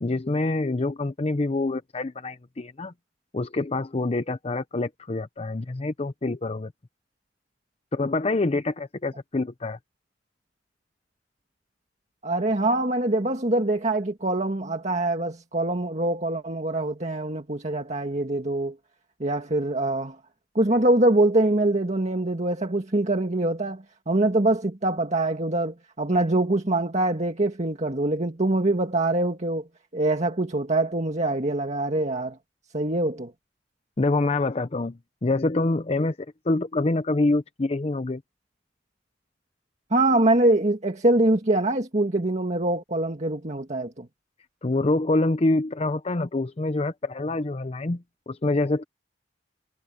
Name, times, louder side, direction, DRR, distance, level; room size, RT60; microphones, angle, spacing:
voice 1, 0.0-2.9 3.3-6.7 7.9-9.8 34.0-36.2 36.4-38.2 44.6-48.8, left 2 dB, 35° left, 0.6 m, -26 dB
voice 2, 12.2-18.8 19.2-20.2 20.6-29.6 29.9-32.4 32.7-33.3 39.9-44.1, right 2 dB, 40° right, 1.8 m, -24 dB
head